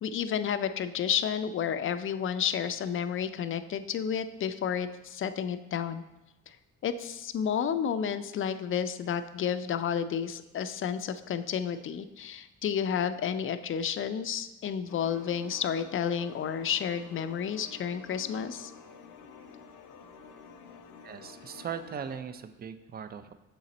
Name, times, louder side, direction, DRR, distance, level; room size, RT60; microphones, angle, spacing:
voice 1, 0.0-6.0 6.5-6.6 6.8-18.7, left 8 dB, 45° left, 11 dB, 0.4 m, -31 dB
sound 1, 14.9-22.2, left 5 dB, 85° left, 0.7 m, -50 dB
voice 2, 21.0-23.3, right 7 dB, 30° right, 11 dB, 0.4 m, -39 dB
6.8 x 3.8 x 4.2 m, 1.0 s
cardioid pair, 90°, 30 cm